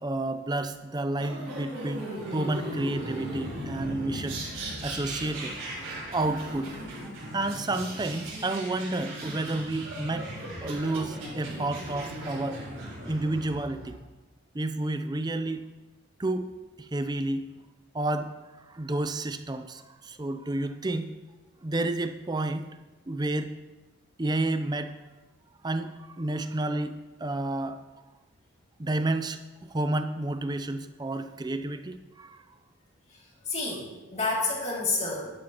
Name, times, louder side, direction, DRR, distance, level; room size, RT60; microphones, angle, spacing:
voice 1, 0.0-2.1 2.3-4.4 4.8-5.5 6.1-6.7 7.3-10.3 10.6-12.6 13.1-14.0 14.5-15.6 16.2-16.5 16.8-17.5 17.9-18.3 18.7-21.1 21.6-22.7 23.1-23.5 24.2-25.0 25.6-27.8 28.8-32.4, right 2 dB, 20° right, 9 dB, 0.5 m, -30 dB
sound 1, 1.2-13.9, right 1 dB, 70° right, 4.0 m, -37 dB
voice 2, 33.1-35.3, left 3 dB, 30° left, -3 dB, 2.5 m, -30 dB
11.5 x 11.5 x 2.9 m, 1.2 s
head